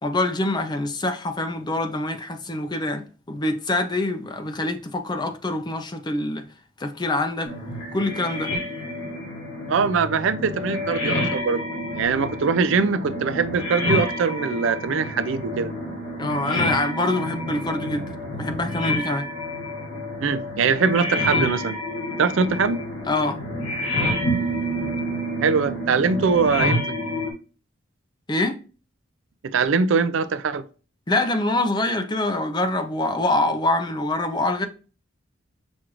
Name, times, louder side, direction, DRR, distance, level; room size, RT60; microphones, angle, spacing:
voice 1, 0.0-6.5 6.8-7.5 7.9-8.5 16.2-19.3 23.1-23.4 28.3-28.6 31.1-34.7, left 2 dB, 20° left, 0.5 m, -25 dB
sound 1, 7.5-27.3, left 1 dB, 75° left, 1.6 m, -28 dB
voice 2, 9.7-11.6 11.9-15.7 20.2-21.8 22.2-22.8 25.4-26.8 29.4-30.6, right 5 dB, 70° right, 0.4 m, -22 dB
6.2 x 2.5 x 2.9 m
head